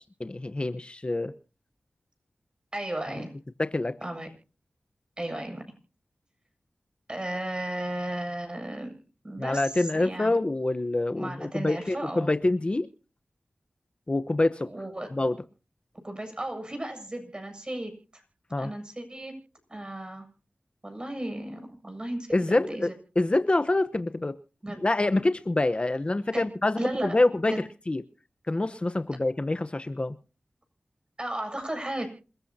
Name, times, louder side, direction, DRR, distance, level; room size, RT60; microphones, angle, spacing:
voice 1, 0.2-1.3 3.6-4.0 9.4-12.9 14.1-14.7 15.1-15.4 18.5-18.7 22.3-22.9 23.2-24.4 24.8-27.5 27.9-28.0 28.5-30.1, left 2 dB, 35° left, 11 dB, 1.0 m, -26 dB
voice 2, 2.7-3.3 4.0-4.3 5.2-5.6 7.1-8.9 9.2-10.4 11.2-12.3 14.7-15.1 16.0-18.2 18.6-19.3 19.7-20.3 20.8-22.9 24.6-24.8 26.3-26.4 26.8-27.2 27.5-27.6 31.2-32.1, right 1 dB, 30° right, 6 dB, 7.6 m, -34 dB
27.5 x 14.5 x 2.8 m, 0.37 s
cardioid pair, 45°, 3 cm